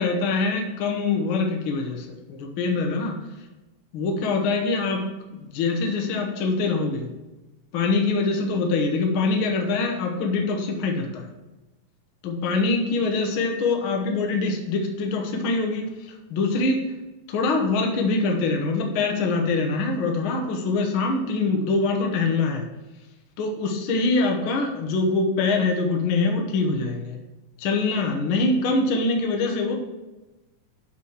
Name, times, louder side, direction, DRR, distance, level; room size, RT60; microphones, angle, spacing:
voice 1, 0.0-3.2 3.9-5.0 5.3-7.1 7.7-11.2 12.2-15.9 16.3-16.8 17.3-22.7 23.4-27.2 27.6-29.7, left 3 dB, 70° left, 2 dB, 1.2 m, -24 dB
6.8 x 4.5 x 6.4 m, 1.1 s
omnidirectional pair, 3.9 m